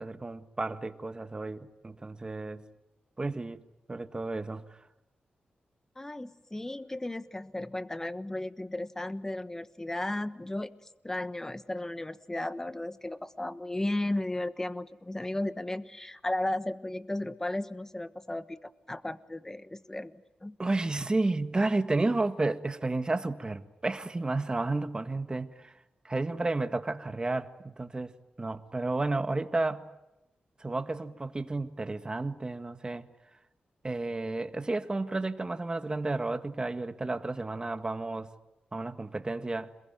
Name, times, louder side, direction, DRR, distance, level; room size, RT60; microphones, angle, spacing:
voice 1, 0.0-2.6 3.2-3.6 3.9-4.6 20.6-25.7 26.0-28.1 28.4-29.9 30.6-33.0 33.8-38.3 38.7-39.7, right 2 dB, 25° right, 1.7 m, -32 dB
voice 2, 5.9-20.6, left 1 dB, 15° left, 1.3 m, -35 dB
27.5 x 22.0 x 9.3 m
wide cardioid pair, 100°, 3 cm